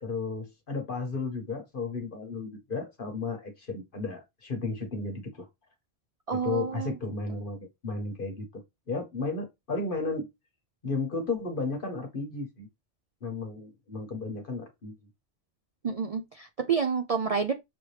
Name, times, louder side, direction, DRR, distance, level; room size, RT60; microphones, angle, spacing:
voice 1, 0.0-5.5 6.3-8.5 8.9-10.3 10.8-12.7 13.2-14.9, left 3 dB, 50° left, 1.2 m, -33 dB
voice 2, 6.3-7.0 15.8-17.5, right 6 dB, 60° right, 0.3 m, -29 dB
6.0 x 2.7 x 3.2 m
omnidirectional pair, 1.2 m